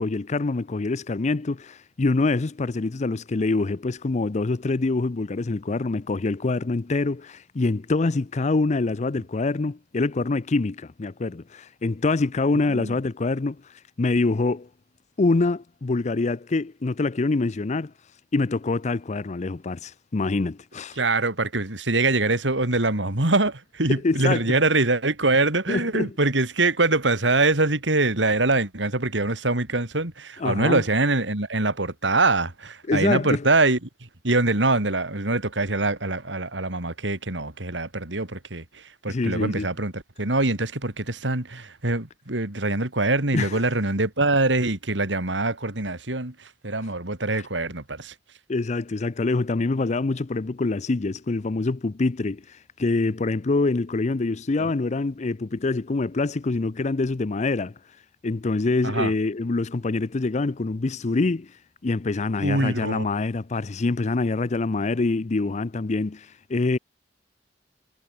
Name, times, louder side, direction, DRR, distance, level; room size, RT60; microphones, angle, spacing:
voice 1, 0.0-13.6 14.0-14.7 15.2-17.9 18.3-21.0 23.9-24.4 25.7-26.1 30.4-30.8 32.9-33.5 39.1-39.7 43.3-43.6 48.5-57.7 58.2-61.5 61.8-66.8, left 3 dB, 40° left, 0.5 m, -25 dB
voice 2, 21.0-33.8 34.2-48.1 54.6-54.7 58.8-59.1 62.4-63.1, right 2 dB, 75° right, 3.2 m, -24 dB
head